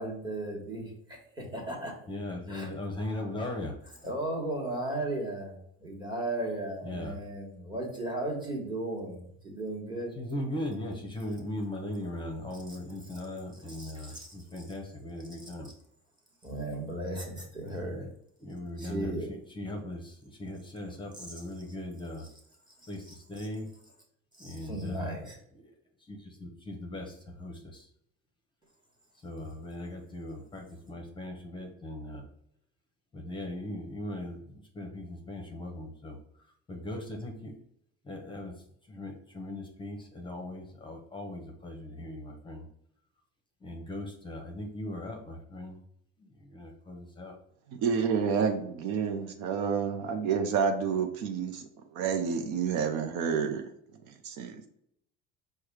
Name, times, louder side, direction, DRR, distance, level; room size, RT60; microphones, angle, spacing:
voice 1, 0.0-2.0 2.5-2.7 4.0-10.1 12.7-13.2 13.7-14.6 15.4-15.5 16.4-18.1 18.8-19.3 21.1-21.4 22.2-22.3 23.0-23.5 24.4-25.4, right 1 dB, 15° right, -1 dB, 1.4 m, -36 dB
voice 2, 2.1-3.8 6.9-7.1 10.2-15.7 17.9-18.0 18.4-22.2 22.9-23.0 23.3-23.7 24.4-25.1 26.1-27.8 29.2-32.2 33.1-34.4 34.7-36.2 36.7-37.5 38.1-38.5 38.9-42.6 43.6-45.7 46.5-47.3, left 1 dB, 15° left, 1 dB, 0.8 m, -39 dB
voice 3, 47.8-51.7 51.9-53.7 54.1-54.7, right 6 dB, 70° right, 5 dB, 0.6 m, -29 dB
4.7 x 2.3 x 4.7 m, 0.72 s
supercardioid pair, 115°, 30 cm